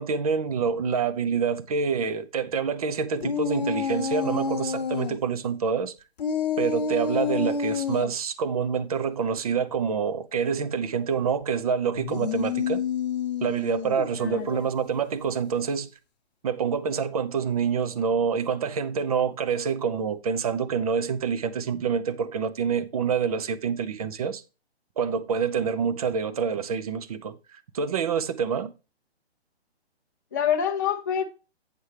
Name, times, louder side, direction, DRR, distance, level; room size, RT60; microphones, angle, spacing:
voice 1, 0.0-5.9 6.6-12.8 13.4-15.9 16.4-24.4 25.0-28.7, right 6 dB, 35° right, 0.6 m, -27 dB
sound 1, 3.2-5.2 6.2-8.1 11.9-14.2, left 6 dB, 40° left, 0.9 m, -28 dB
voice 2, 14.2-14.6 30.3-31.2, left 8 dB, 20° left, 0.4 m, -26 dB
8.2 x 7.0 x 3.3 m
hypercardioid pair, 155°, 32 cm